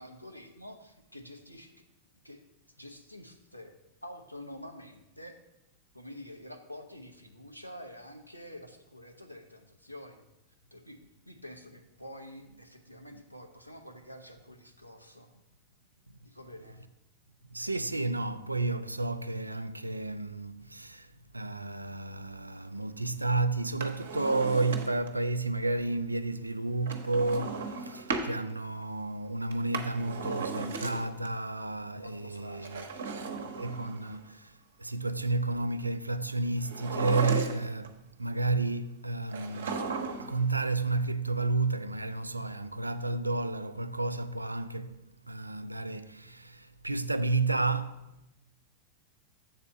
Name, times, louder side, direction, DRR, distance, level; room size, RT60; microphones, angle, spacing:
voice 1, 0.0-1.8 2.2-2.4 2.8-3.8 4.0-5.4 5.9-10.3 10.7-11.0 11.3-15.3 16.2-16.8 31.9-33.4, left 1 dB, 90° left, 0.8 m, -48 dB
voice 2, 17.5-32.8 33.6-39.9 40.2-48.2, right 3 dB, 85° right, 0.3 m, -31 dB
Drawer open or close, 23.6-25.2 26.9-28.3 29.5-31.3 32.5-34.2 36.6-37.9 39.3-40.4 40.7-40.8, right 4 dB, 65° right, 0.8 m, -36 dB
7.3 x 4.2 x 6.2 m
figure-of-eight pair, 90°, 0 cm